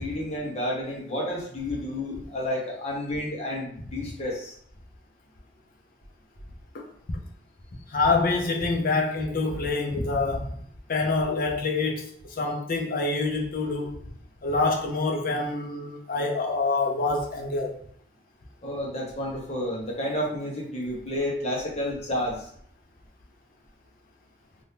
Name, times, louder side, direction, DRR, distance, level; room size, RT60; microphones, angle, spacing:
voice 1, 0.0-4.5 18.6-22.5, left 1 dB, 35° left, 1.0 m, -30 dB
voice 2, 6.7-7.2 7.9-10.6 10.9-14.0 14.4-17.8, left 3 dB, 50° left, 0.6 m, -26 dB
2.8 x 2.7 x 3.4 m
head